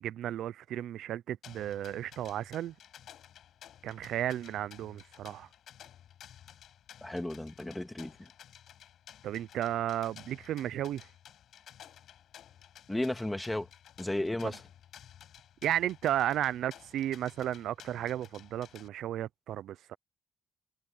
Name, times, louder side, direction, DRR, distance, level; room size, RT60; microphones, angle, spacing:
voice 1, 0.0-2.7 3.8-5.5 9.2-11.1 14.4-14.5 15.6-20.0, right 12 dB, 80° right, 0.4 m, -34 dB
sound 1, 1.4-18.9, left 10 dB, 70° left, 5.1 m, -54 dB
voice 2, 7.0-8.3 12.9-13.7 14.0-14.6, left 1 dB, 10° left, 2.2 m, -34 dB
cardioid pair, 90°, 0 cm